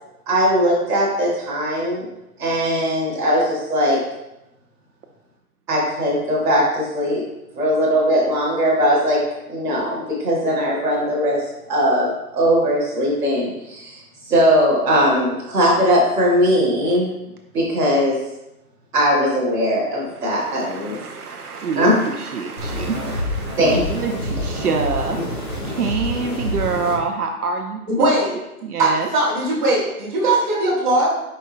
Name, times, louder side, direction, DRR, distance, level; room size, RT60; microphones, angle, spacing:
voice 1, 0.3-2.0 2.4-4.0 5.7-7.2 7.5-9.2 9.5-11.4 11.7-14.0 14.3-17.1 17.5-18.2 18.9-21.0 21.7-21.9 23.6-23.8, equal, 5° right, -13 dB, 2.0 m, -19 dB
voice 2, 20.2-25.2 25.6-27.8 28.6-29.1, right 5 dB, 70° right, 3 dB, 0.8 m, -26 dB
sound 1, 22.6-27.0, left 1 dB, 15° left, 0.8 m, -27 dB
voice 3, 27.9-28.3 28.8-31.1, right 2 dB, 30° right, -6 dB, 2.3 m, -19 dB
10.0 x 5.5 x 2.2 m, 0.90 s
hypercardioid pair, 180°, 46 cm